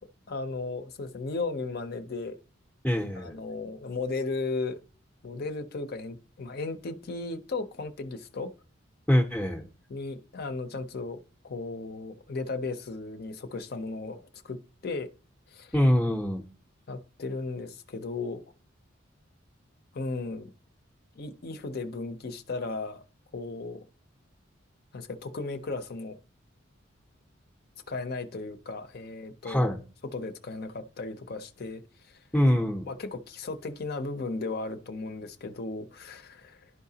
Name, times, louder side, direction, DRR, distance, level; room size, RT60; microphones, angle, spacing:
voice 1, 0.3-2.4 3.1-4.8 5.2-8.5 9.9-11.2 11.4-15.1 15.5-15.8 16.9-18.4 19.9-20.5 21.2-23.0 23.3-23.9 24.9-26.2 27.9-29.7 30.1-32.2 32.9-36.7, left 3 dB, 50° left, 0.5 m, -35 dB
voice 2, 2.8-3.4 9.1-9.6 15.7-16.4 29.5-29.8 32.3-32.9, equal, 5° left, 0.6 m, -24 dB
11.0 x 4.8 x 2.7 m
head